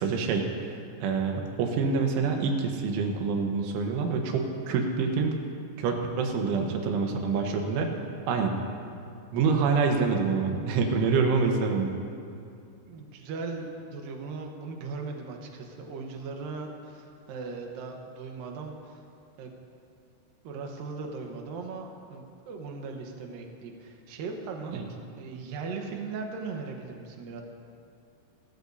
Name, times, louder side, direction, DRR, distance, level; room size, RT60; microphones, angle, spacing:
voice 1, 0.0-5.3 5.8-7.9 8.3-8.6 9.3-11.9 24.7-24.8, right 4 dB, 90° right, 3 dB, 3.7 m, -26 dB
voice 2, 12.9-19.0 19.4-19.5 20.4-27.4, right 4 dB, 70° right, 2 dB, 2.3 m, -38 dB
26.0 x 13.0 x 2.8 m, 2.5 s
omnidirectional pair, 5.4 m